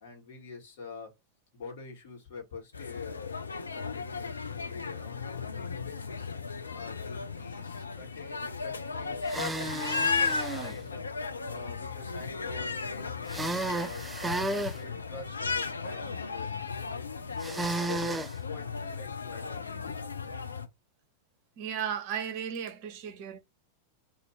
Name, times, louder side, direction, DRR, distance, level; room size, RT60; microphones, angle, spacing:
voice 1, 0.0-1.1 1.5-6.3 6.7-11.0 11.5-16.6 17.3-20.4, left 4 dB, 55° left, 1.5 m, -46 dB
sound 1, 2.7-20.7, left 5 dB, 75° left, 0.5 m, -35 dB
sound 2, 9.2-10.7 13.3-14.8 17.4-18.3, right 2 dB, 10° right, 0.4 m, -33 dB
voice 2, 21.6-23.4, right 8 dB, 45° right, 0.8 m, -35 dB
2.8 x 2.7 x 4.2 m
figure-of-eight pair, 90°, 0 cm